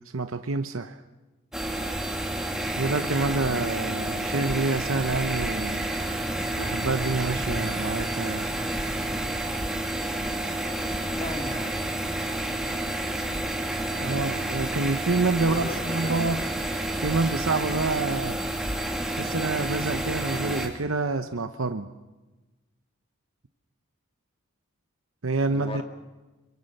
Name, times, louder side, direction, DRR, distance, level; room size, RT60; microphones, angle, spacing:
voice 1, 0.1-1.0 2.8-5.9 6.6-8.5 14.0-16.4 17.0-18.4 19.2-21.9 25.2-25.8, right 3 dB, 70° right, 8 dB, 0.8 m, -27 dB
sound 1, 1.5-20.7, right 1 dB, ahead, 2.6 m, -30 dB
voice 2, 11.0-11.8 15.4-16.4 25.5-25.8, left 1 dB, 25° left, 4 dB, 2.1 m, -36 dB
26.5 x 23.5 x 6.7 m, 1.1 s
head